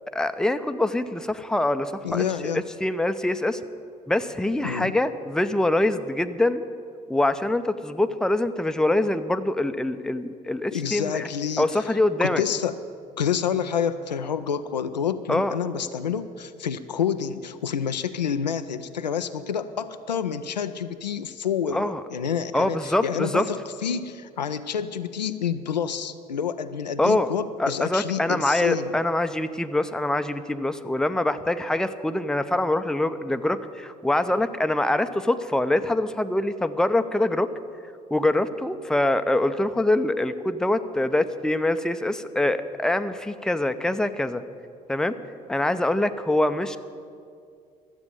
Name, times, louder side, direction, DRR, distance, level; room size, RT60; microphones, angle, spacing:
voice 1, 0.1-2.2 2.8-3.6 4.1-6.6 7.1-11.3 11.6-12.4 15.3-15.6 21.7-22.0 22.5-23.4 27.0-27.3 27.6-37.5 38.1-44.4 44.9-45.1 45.5-46.8, left 1 dB, 5° left, 10 dB, 0.6 m, -24 dB
voice 2, 2.0-2.6 4.6-4.9 10.7-12.8 13.2-29.0, left 7 dB, 85° left, 10 dB, 0.4 m, -28 dB
12.5 x 7.9 x 8.9 m, 2.3 s
figure-of-eight pair, 50°, 21 cm